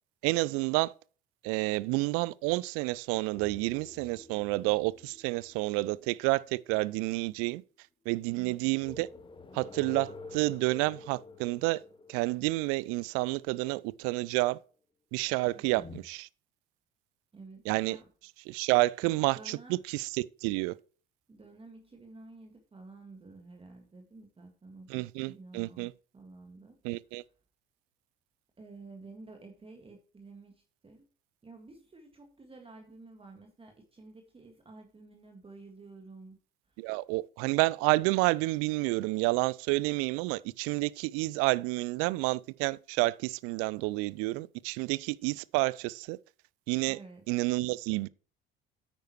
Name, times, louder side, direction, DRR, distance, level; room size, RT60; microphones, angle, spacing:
voice 1, 0.2-0.9 1.4-7.6 8.1-9.1 9.5-11.8 12.1-14.6 15.1-16.3 17.7-18.0 18.5-19.6 19.9-20.1 20.4-20.7 24.9-25.9 26.8-27.2 36.8-46.2 46.7-47.0 47.3-48.1, right 22 dB, 50° right, 0.5 m, -29 dB
sound 1, 3.3-6.8 8.8-13.4 15.8-16.0, left 3 dB, 15° left, 1.3 m, -48 dB
voice 2, 8.3-8.7 15.4-16.0 17.3-18.1 19.0-19.8 21.3-26.8 28.6-31.1 31.4-36.4 36.7-37.0 46.9-47.3, right 3 dB, 20° right, 1.8 m, -51 dB
9.3 x 9.0 x 3.0 m
figure-of-eight pair, 60°, 29 cm